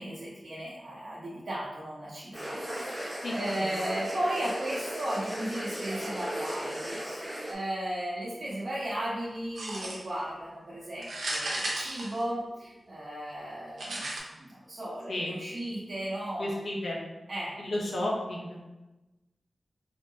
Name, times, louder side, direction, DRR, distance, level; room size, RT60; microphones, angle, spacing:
voice 1, 0.0-14.1 14.4-16.5 17.3-17.5, right 1 dB, 55° right, -10 dB, 0.9 m, -35 dB
sound 1, 2.3-7.5, equal, 10° right, 0.8 m, -36 dB
voice 2, 3.2-3.7 15.1-15.3 16.4-17.0 17.6-18.6, left 1 dB, 80° left, -2 dB, 0.7 m, -32 dB
sound 2, 9.6-10.2 11.0-12.7 13.8-14.2, right 1 dB, 85° right, 0.7 m, -34 dB
3.5 x 2.8 x 2.8 m, 1.1 s
wide cardioid pair, 80°, 0 cm